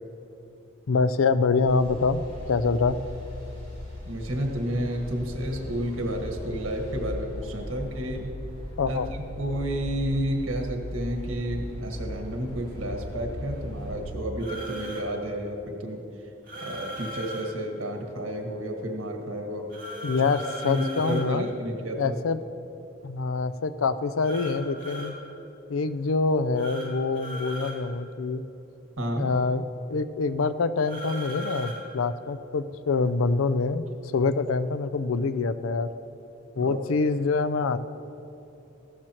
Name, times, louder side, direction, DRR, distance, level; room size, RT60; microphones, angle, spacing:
voice 1, 0.9-2.2 2.5-3.0 8.8-9.1 20.0-21.5 22.0-22.4 23.0-25.1 25.7-28.4 29.1-29.6 29.9-33.9 34.1-35.9 36.6-37.8, left 4 dB, 90° left, 13 dB, 0.5 m, -25 dB
sound 1, 1.7-14.1, left 1 dB, 25° left, 2.9 m, -38 dB
voice 2, 4.1-8.3 8.8-16.0 16.6-19.7 20.6-22.2 29.0-29.3 36.6-36.8, equal, 90° right, 2 dB, 1.5 m, -31 dB
sound 2, 14.4-15.0 16.4-17.5 19.7-21.2 24.2-25.1 26.6-26.9 27.1-27.8 30.8-31.8, equal, 45° right, 2.1 m, -37 dB
15.0 x 12.5 x 3.0 m, 2.9 s
head